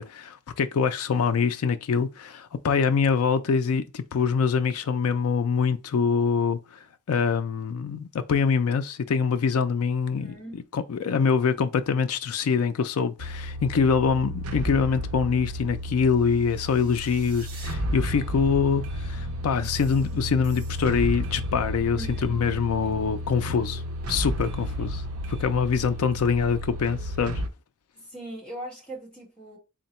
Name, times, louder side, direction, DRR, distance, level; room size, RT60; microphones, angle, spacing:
voice 1, 0.0-10.3 10.7-23.8 24.1-25.0 25.3-27.4, left 6 dB, 75° left, 0.4 m, -24 dB
voice 2, 10.1-10.6 22.0-22.4 22.8-22.9 24.8-24.9 25.7-25.8 28.0-29.6, right 1 dB, 5° left, 1.6 m, -40 dB
sound 1, 13.2-27.5, equal, 75° right, 0.6 m, -32 dB
3.7 x 2.1 x 4.1 m
head